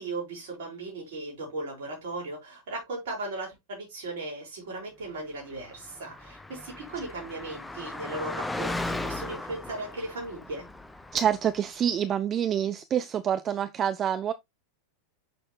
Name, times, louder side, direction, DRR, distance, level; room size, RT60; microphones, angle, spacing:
voice 1, 0.0-10.7, right 2 dB, 55° right, 5.3 m, -37 dB
Car passing by, 5.6-11.6, left 2 dB, 5° left, 0.7 m, -37 dB
voice 2, 11.1-14.3, right 9 dB, 25° right, 0.6 m, -27 dB
7.5 x 6.5 x 3.2 m
figure-of-eight pair, 90°, 0 cm